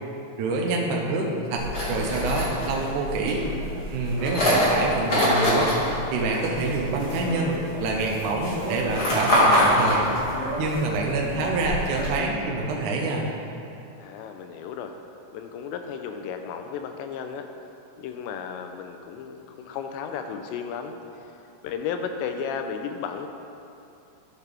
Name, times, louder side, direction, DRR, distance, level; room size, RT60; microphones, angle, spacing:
voice 1, 0.4-3.4 3.9-5.7 6.1-10.0 10.6-13.3, right 3 dB, 85° right, -1 dB, 1.7 m, -26 dB
sound 1, 1.6-12.1, equal, 70° left, 0.9 m, -25 dB
voice 2, 4.2-4.5 14.0-14.9 15.3-17.5 18.0-21.0 21.6-23.3, left 7 dB, 85° left, 6 dB, 2.8 m, -34 dB
12.5 x 6.0 x 3.4 m, 2.7 s
omnidirectional pair, 5.0 m